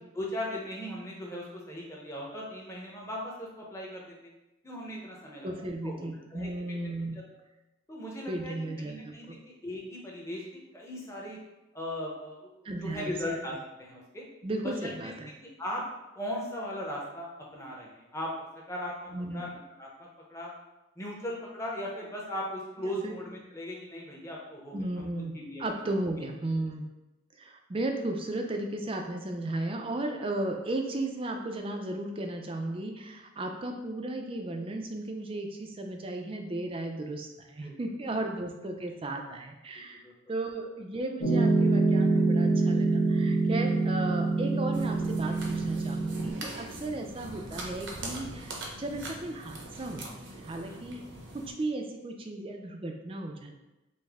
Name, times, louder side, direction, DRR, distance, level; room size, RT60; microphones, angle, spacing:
voice 1, 0.2-4.0 4.6-6.1 6.3-6.8 7.9-11.4 11.7-12.5 12.8-14.3 14.6-15.1 15.4-15.8 16.1-18.3 18.7-20.5 21.0-25.0 25.3-25.6 26.2-26.3 37.6-37.8 39.7-40.1 45.8-45.9 50.7-50.9, left 1 dB, 15° left, -3 dB, 0.7 m, -38 dB
voice 2, 5.4-7.3 8.3-9.4 12.6-13.2 14.4-15.3 19.1-19.4 23.0-23.2 24.7-26.8 27.4-40.0 40.3-51.0 51.3-53.6, right 2 dB, 25° right, 3 dB, 0.4 m, -35 dB
Piano, 41.2-46.3, right 3 dB, 75° left, 1.1 m, -25 dB
sound 1, 44.7-51.5, right 1 dB, 65° right, 0.7 m, -42 dB
5.2 x 2.1 x 3.5 m, 1.0 s
head